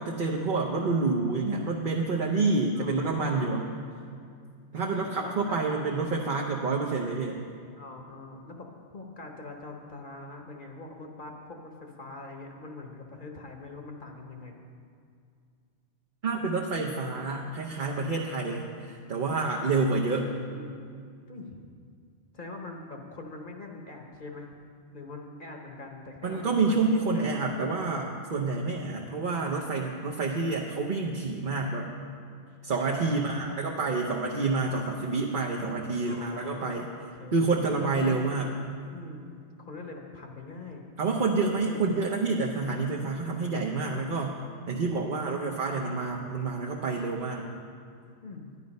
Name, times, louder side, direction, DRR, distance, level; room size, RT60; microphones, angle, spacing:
voice 1, 0.0-3.7 4.7-7.4 16.2-20.3 26.2-31.9 32.6-36.9 37.3-38.5 41.0-44.4 44.7-47.5, right 3 dB, 50° right, -1 dB, 0.9 m, -28 dB
voice 2, 2.7-3.4 4.8-5.6 7.7-14.6 20.1-21.0 21.3-21.6 22.3-24.6 24.9-27.8 32.8-34.1 36.0-37.5 37.9-38.2 38.9-40.9 41.6-41.8 44.7-45.6 48.2-48.5, left 3 dB, 50° left, 1 dB, 1.1 m, -44 dB
11.0 x 10.5 x 5.3 m, 2.2 s
omnidirectional pair, 1.2 m